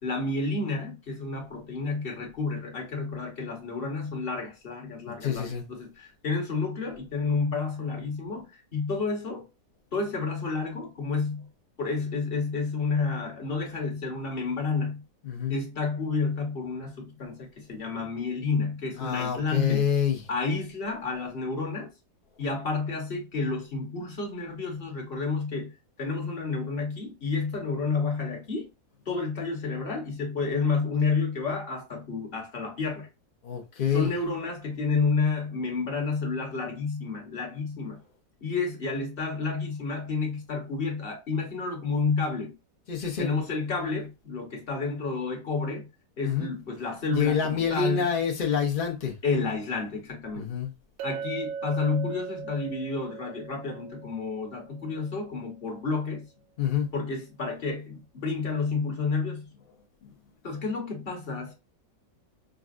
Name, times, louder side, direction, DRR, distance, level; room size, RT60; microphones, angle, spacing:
voice 1, 0.0-9.5 9.9-11.5 11.8-15.0 15.5-19.9 20.3-21.9 22.4-25.7 26.0-28.7 29.1-33.1 33.9-38.0 38.4-42.5 43.2-45.9 46.2-48.1 49.2-50.5 51.0-56.3 56.9-59.5 60.4-61.5, left 4 dB, 40° left, 1.0 m, -30 dB
voice 2, 5.1-5.6 15.2-15.5 19.0-20.2 33.4-34.1 42.9-43.3 46.2-46.5 47.1-49.1 50.4-50.7 56.6-56.9 60.0-60.1, left 7 dB, 80° left, 0.4 m, -27 dB
Chink clink, 51.0-55.2, right 6 dB, 90° right, 1.3 m, -39 dB
5.1 x 2.3 x 2.5 m
omnidirectional pair, 2.0 m